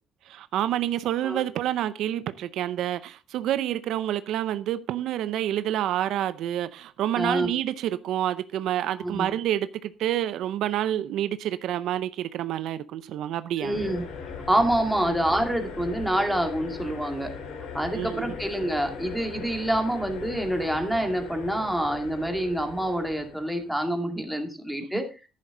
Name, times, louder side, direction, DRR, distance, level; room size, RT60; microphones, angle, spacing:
voice 1, 0.3-13.8 15.0-15.2 17.9-18.3 24.9-25.0, right 12 dB, 75° right, 0.6 m, -28 dB
voice 2, 7.2-7.5 9.0-9.3 13.6-14.1 14.5-17.3 17.7-25.0, right 1 dB, ahead, 2.3 m, -27 dB
sound 1, 13.7-24.0, left 5 dB, 85° left, 3.2 m, -39 dB
11.0 x 10.0 x 3.8 m
cardioid pair, 120°, 0 cm